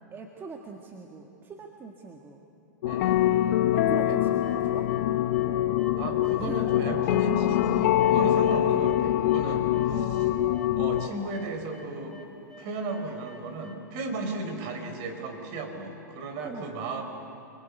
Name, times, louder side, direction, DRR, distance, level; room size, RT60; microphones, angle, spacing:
voice 1, 0.1-2.4 3.7-4.9 6.4-6.7 7.4-7.5 9.9-10.8 14.3-14.6 16.4-16.7, right 4 dB, 20° right, 3 dB, 1.8 m, -42 dB
sound 1, 2.8-11.1, left 13 dB, 60° left, 0.9 m, -24 dB
voice 2, 2.9-3.2 4.1-4.2 5.9-10.3 10.8-17.0, right 3 dB, 50° right, 5 dB, 4.5 m, -35 dB
sound 2, 3.5-11.5, right 3 dB, 75° right, 3.4 m, -45 dB
sound 3, 4.4-5.1 5.3-5.9 6.2-9.5 9.7-13.7, left 1 dB, 5° left, 3.9 m, -51 dB
29.5 x 22.0 x 8.4 m, 2.6 s
hypercardioid pair, 120°, 10 cm